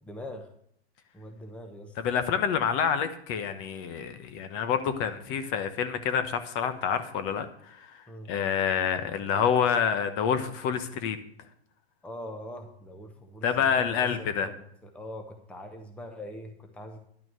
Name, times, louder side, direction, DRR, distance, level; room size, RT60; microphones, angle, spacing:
voice 1, 0.0-0.5 1.1-1.9 8.1-8.3 12.0-17.0, left 1 dB, 5° left, 5 dB, 0.9 m, -42 dB
voice 2, 2.0-11.2 13.4-14.5, left 7 dB, 35° left, 10 dB, 1.1 m, -28 dB
11.0 x 6.0 x 7.5 m, 0.67 s
hypercardioid pair, 145°, 32 cm